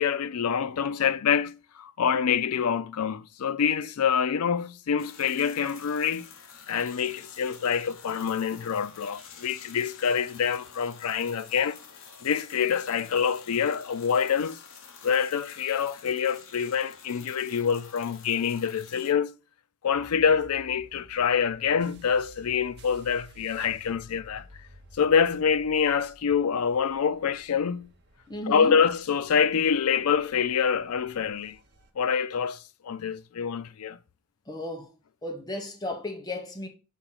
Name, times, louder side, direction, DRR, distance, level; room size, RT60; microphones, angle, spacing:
voice 1, 0.0-6.3 6.7-11.8 12.2-14.6 15.0-19.3 19.8-24.4 24.9-27.9 28.5-31.6 32.0-34.0, left 7 dB, 85° left, 0.5 m, -26 dB
sound 1, 5.0-19.1, left 6 dB, 65° left, 0.9 m, -49 dB
sound 2, 19.9-31.9, right 1 dB, 50° right, 0.8 m, -54 dB
voice 2, 28.3-28.8 34.5-34.9 35.2-36.7, left 1 dB, 20° left, 0.9 m, -34 dB
6.3 x 2.9 x 5.6 m
head